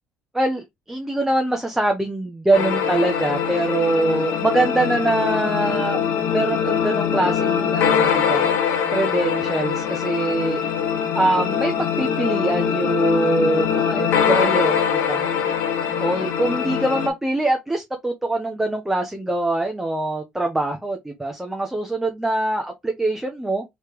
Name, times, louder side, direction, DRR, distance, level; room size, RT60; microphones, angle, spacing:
voice 1, 0.3-6.0 6.3-8.5 8.9-10.7 11.1-15.3 16.0-23.6, right 2 dB, 10° right, 1.0 m, -23 dB
sound 1, 2.5-17.1, left 7 dB, 75° left, 1.0 m, -22 dB
3.3 x 3.2 x 4.6 m
supercardioid pair, 85°, 4 cm